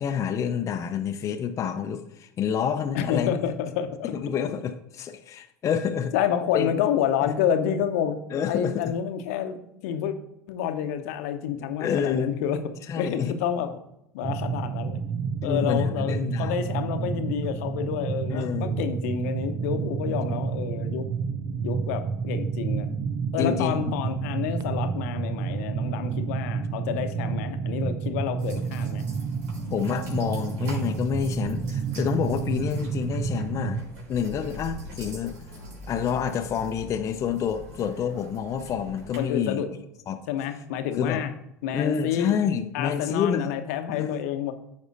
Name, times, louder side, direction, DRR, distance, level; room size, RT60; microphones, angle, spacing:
voice 1, 0.0-3.3 4.0-6.1 6.5-6.7 7.2-7.3 8.3-8.8 11.8-12.3 12.9-13.3 15.4-16.6 18.3-18.8 23.4-23.9 29.7-33.8 34.1-35.3 35.9-39.6 40.1-40.2 41.0-41.3 41.7-43.5 43.9-44.2, left 7 dB, 35° left, 6 dB, 0.6 m, -28 dB
voice 2, 2.9-4.1 6.1-8.2 8.5-10.1 10.5-12.6 13.0-13.8 14.1-15.0 15.4-21.1 21.6-22.9 23.3-29.0 39.2-39.7 40.3-41.3 41.6-42.4 42.7-44.5, left 9 dB, 60° left, 8 dB, 0.8 m, -29 dB
sound 1, 14.2-33.8, right 6 dB, 40° right, 0.6 m, -30 dB
sound 2, 28.4-39.2, equal, 60° right, 3.5 m, -43 dB
14.0 x 5.3 x 2.6 m, 0.80 s
figure-of-eight pair, 70°, 9 cm